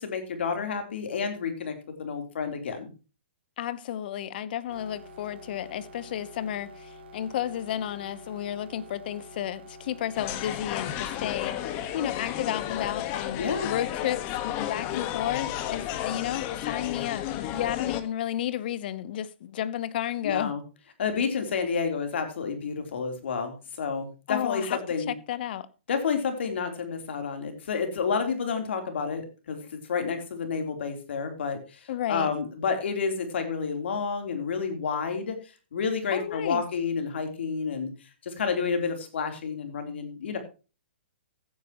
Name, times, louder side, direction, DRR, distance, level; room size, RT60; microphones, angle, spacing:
voice 1, 0.0-2.9 13.4-13.7 20.2-20.6 21.0-25.1 25.9-35.3 35.7-37.9 38.2-40.4, left 5 dB, 65° left, 3.5 m, -30 dB
voice 2, 3.6-20.5 24.3-24.8 25.1-25.7 31.9-32.3 36.1-36.6, left 11 dB, 50° left, 1.0 m, -32 dB
sound 1, 4.7-12.2, left 1 dB, 65° right, 3.7 m, -48 dB
sound 2, 10.2-18.0, left 12 dB, 35° left, 1.5 m, -33 dB
15.5 x 9.6 x 3.0 m
hypercardioid pair, 140°, 6 cm